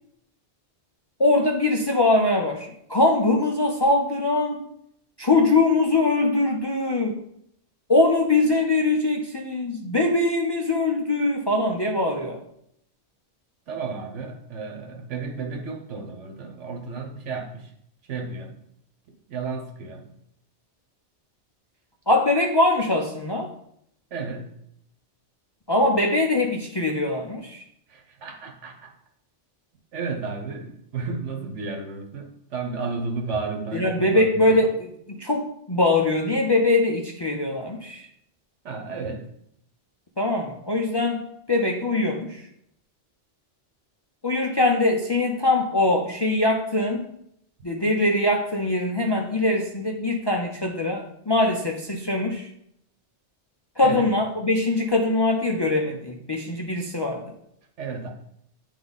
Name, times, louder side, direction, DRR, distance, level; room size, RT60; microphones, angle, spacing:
voice 1, 1.2-4.6 5.2-7.2 7.9-12.4 22.1-23.5 25.7-27.6 33.7-38.1 40.2-42.4 44.2-47.0 47.6-52.5 53.8-57.3, left 2 dB, 35° left, 0.4 m, -22 dB
voice 2, 13.7-17.7 18.1-18.6 19.1-20.1 24.1-24.5 27.9-28.9 29.9-34.6 38.6-39.3 53.8-54.1 57.8-58.1, right 4 dB, 85° right, 1.3 m, -33 dB
9.1 x 3.5 x 4.0 m
omnidirectional pair, 1.2 m